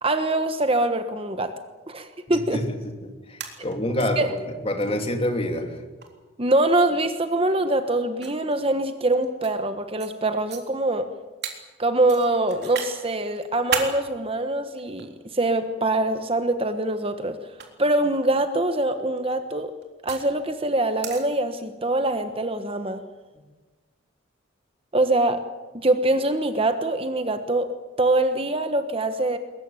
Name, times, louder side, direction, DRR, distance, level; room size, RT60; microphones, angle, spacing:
voice 1, 0.0-1.5 1.9-2.6 3.9-4.3 6.4-11.1 11.8-17.4 17.8-19.7 20.0-23.0 24.9-25.4 25.7-27.7 28.0-29.4, right 2 dB, 30° right, 8 dB, 1.2 m, -24 dB
voice 2, 2.3-4.4 4.6-5.8, left 1 dB, 30° left, 4 dB, 2.8 m, -27 dB
sound 1, 3.2-4.0 4.4-4.5 4.8-4.9 6.0-6.2 7.3-7.4 8.2-9.6 10.0-10.1 10.5-10.6 11.4-11.6 12.1-12.9 13.3-13.9 14.8-15.5 16.6-16.8 17.5-17.7 19.0-20.3 21.0-21.2, right 6 dB, 55° right, 3.7 m, -32 dB
21.5 x 21.5 x 9.0 m, 1.3 s
head